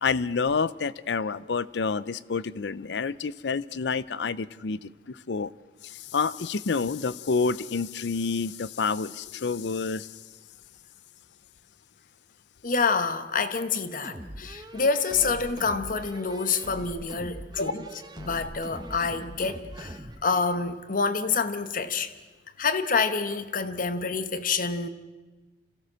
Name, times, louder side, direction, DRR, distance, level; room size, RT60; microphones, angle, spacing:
voice 1, 0.0-5.5 5.8-10.1, left 5 dB, 70° left, 0.6 m, -28 dB
voice 2, 12.6-22.1 22.6-24.9, left 4 dB, 50° left, 1.1 m, -27 dB
sound 1, 14.0-20.2, right 1 dB, 25° right, 1.2 m, -42 dB
26.5 x 16.0 x 6.3 m
head